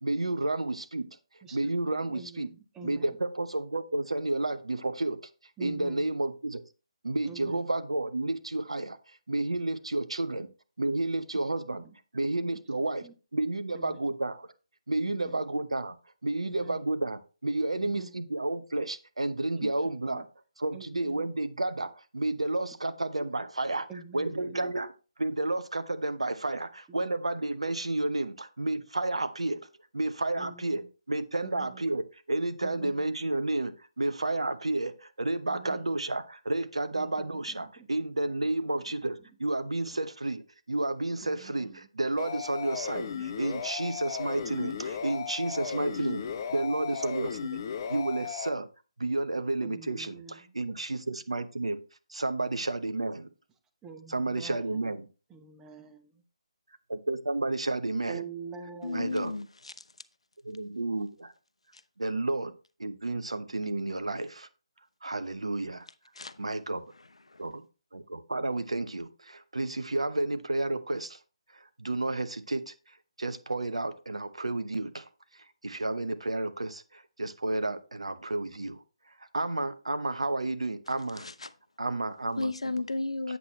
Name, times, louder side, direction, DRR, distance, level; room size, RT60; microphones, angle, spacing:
voice 1, 0.0-1.1 1.5-2.5 2.8-5.2 5.6-6.6 7.0-9.0 9.3-10.5 10.8-11.8 12.1-13.1 13.3-14.5 14.9-16.0 16.2-20.2 20.6-23.9 24.1-24.9 25.2-29.6 29.9-40.4 40.7-46.2 46.5-47.6 47.9-48.7 49.0-51.8 52.1-53.3 54.1-55.1 56.9-58.2 58.9-59.3 60.4-61.3 62.0-62.5 62.8-64.5 65.0-65.9 66.4-66.9 67.4-67.7 67.9-71.2 71.5-72.7 73.2-78.8 79.3-81.3 81.8-82.5, right 2 dB, 80° right, 0.9 m, -31 dB
voice 2, 2.1-2.5 2.8-3.0 5.6-6.1 7.2-7.6 13.0-13.1 13.7-14.0 15.0-15.3 16.4-16.8 17.8-18.1 19.6-19.7 20.1-20.2 20.7-21.2 23.9-24.7 30.4-30.8 31.4-31.7 32.6-33.0 35.5-35.9 37.0-37.3 41.2-41.8 42.9-43.3 49.6-50.3 53.8-54.8 55.3-56.1 58.1-59.3, right 5 dB, 10° right, 0.9 m, -45 dB
sound 1, 42.2-48.5, left 7 dB, 40° left, 0.8 m, -36 dB
voice 3, 58.8-59.7 61.7-61.8 66.1-66.5 66.9-67.5 81.1-81.5 82.4-83.4, left 2 dB, 75° left, 0.6 m, -34 dB
8.3 x 7.4 x 3.1 m
figure-of-eight pair, 145°, 3 cm